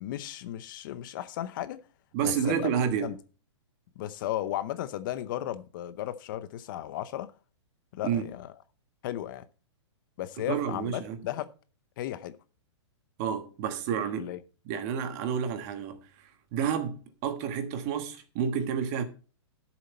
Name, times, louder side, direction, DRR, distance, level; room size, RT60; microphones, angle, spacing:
voice 1, 0.0-1.8 2.2-2.7 3.0-3.2 4.0-7.3 7.9-8.5 9.0-9.4 10.2-11.5 12.0-12.4 14.2-14.4, left 13 dB, 45° left, 0.7 m, -35 dB
voice 2, 2.1-3.1 8.0-8.2 10.4-11.2 13.2-14.3 14.6-19.1, right 8 dB, 35° right, 1.4 m, -30 dB
12.5 x 7.2 x 4.3 m
hypercardioid pair, 150°, 15 cm